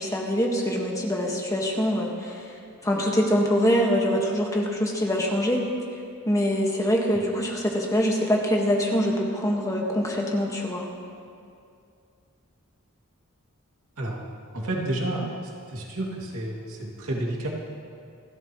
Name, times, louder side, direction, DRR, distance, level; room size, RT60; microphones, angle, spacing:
voice 1, 0.0-2.5 2.8-5.6 6.2-10.9, equal, 15° left, -1 dB, 1.7 m, -24 dB
voice 2, 14.5-15.3 15.7-17.5, right 1 dB, 75° right, -3 dB, 2.6 m, -30 dB
29.0 x 12.5 x 3.2 m, 2.4 s
head